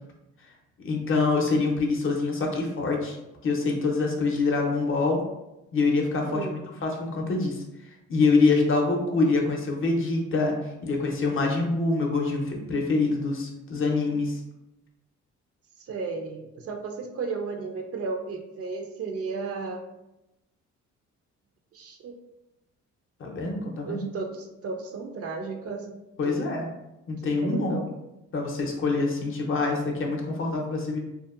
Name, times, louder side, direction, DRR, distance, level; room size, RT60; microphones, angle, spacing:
voice 1, 0.8-3.2 3.4-5.2 5.7-7.6 8.1-10.5 10.8-14.4 23.2-24.0 26.2-26.7 27.1-27.8 28.3-31.0, left 3 dB, 45° left, 1 dB, 0.6 m, -25 dB
voice 2, 6.2-6.6 15.8-19.8 21.7-22.1 23.8-25.9 26.2-26.5 27.2-27.9, right 4 dB, 50° right, 3 dB, 0.4 m, -34 dB
2.7 x 2.1 x 2.3 m, 0.92 s
cardioid pair, 90°, 30 cm